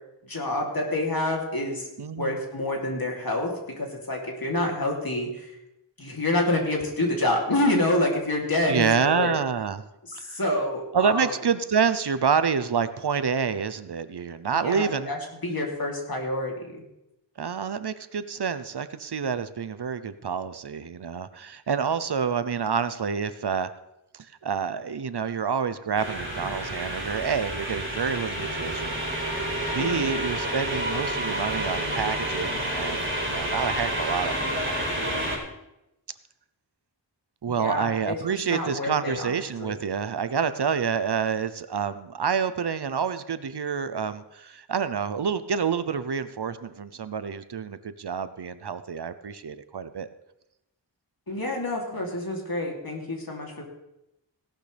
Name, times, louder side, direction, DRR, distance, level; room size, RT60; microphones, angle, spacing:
voice 1, 0.2-1.9 2.2-5.5 6.0-9.3 10.1-11.3 14.6-15.2 15.4-16.8 29.8-30.1 37.5-39.3 39.6-39.8 51.3-53.6, left 1 dB, 50° left, 0 dB, 3.1 m, -27 dB
voice 2, 2.0-2.4 8.7-9.8 10.1-10.4 10.9-15.1 17.4-23.7 24.1-29.0 29.7-35.2 37.4-50.1, right 6 dB, 60° right, 13 dB, 0.8 m, -28 dB
sound 1, 26.0-35.4, right 1 dB, 25° right, 4.4 m, -29 dB
17.0 x 11.5 x 3.4 m, 0.89 s
wide cardioid pair, 65°, 44 cm